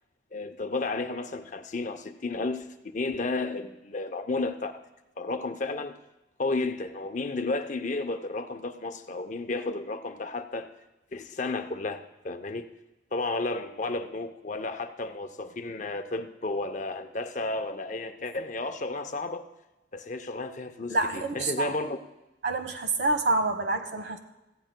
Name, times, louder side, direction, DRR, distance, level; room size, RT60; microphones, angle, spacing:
voice 1, 0.3-4.7 5.2-5.9 6.4-10.7 11.1-12.7 13.1-19.4 19.9-22.0, left 3 dB, 40° left, 8 dB, 0.6 m, -32 dB
voice 2, 20.9-21.7 22.4-24.2, right 2 dB, 65° right, 7 dB, 1.1 m, -27 dB
18.0 x 14.5 x 2.2 m, 1.0 s
head